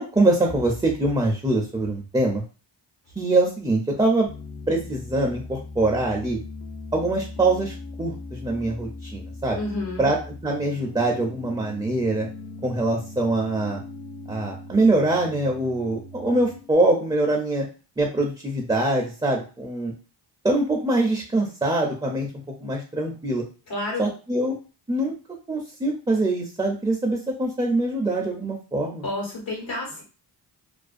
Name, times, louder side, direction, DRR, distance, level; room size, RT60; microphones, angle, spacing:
voice 1, 0.0-2.4 3.2-4.3 4.7-6.4 6.9-9.6 10.0-10.2 10.4-12.3 12.6-13.8 14.3-17.7 18.0-19.9 20.4-22.3 22.6-23.4 24.0-24.6 24.9-25.1 25.5-29.0, right 2 dB, 10° right, 0 dB, 0.4 m, -23 dB
Piano, 4.3-16.7, left 2 dB, 65° left, 0.6 m, -39 dB
voice 2, 9.5-10.1 23.7-24.1 29.0-30.0, left 2 dB, 90° left, -2 dB, 1.2 m, -30 dB
2.4 x 2.2 x 2.4 m, 0.35 s
cardioid pair, 85°, 43 cm